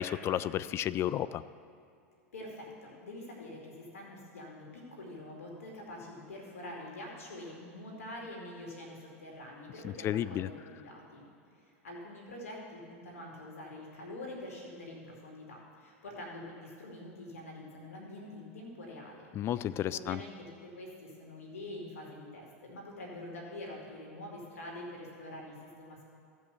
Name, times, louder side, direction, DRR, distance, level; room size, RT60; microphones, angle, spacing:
voice 1, 0.0-1.4 10.0-10.5 19.4-20.2, left 11 dB, 35° left, 16 dB, 0.4 m, -32 dB
voice 2, 2.3-11.2 11.5-26.0, left 1 dB, 90° left, -1 dB, 2.6 m, -45 dB
15.5 x 5.5 x 6.9 m, 2.4 s
hypercardioid pair, 105°, 7 cm